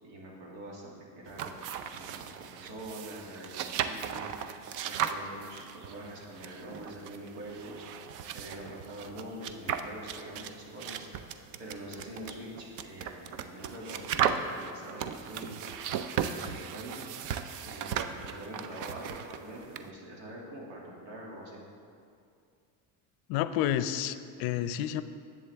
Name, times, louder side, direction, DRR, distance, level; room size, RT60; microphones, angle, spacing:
voice 1, 0.0-1.6 1.9-4.3 4.8-7.9 8.3-11.1 11.6-15.6 16.3-17.1 17.6-21.6, right 1 dB, 85° right, -3 dB, 2.4 m, -44 dB
sound 1, 1.3-19.9, right 8 dB, 55° right, 0.5 m, -37 dB
voice 2, 23.3-25.0, left 11 dB, 65° left, 13 dB, 0.5 m, -30 dB
10.5 x 7.8 x 3.5 m, 2.4 s
cardioid pair, 140°, 39 cm